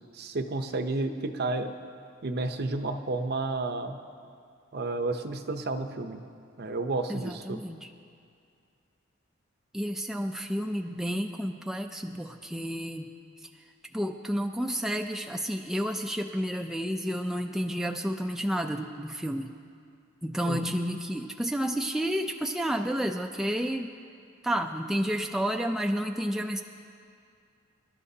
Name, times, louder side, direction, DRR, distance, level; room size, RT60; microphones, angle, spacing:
voice 1, 0.1-1.7 2.2-4.0 4.7-6.2 6.6-7.6 20.4-20.6, right 2 dB, 55° right, 7 dB, 0.7 m, -31 dB
voice 2, 7.1-7.9 9.7-13.1 13.4-13.6 13.9-19.5 20.2-23.9 24.4-26.6, equal, ahead, 3 dB, 0.4 m, -31 dB
25.5 x 11.5 x 2.8 m, 2.4 s
head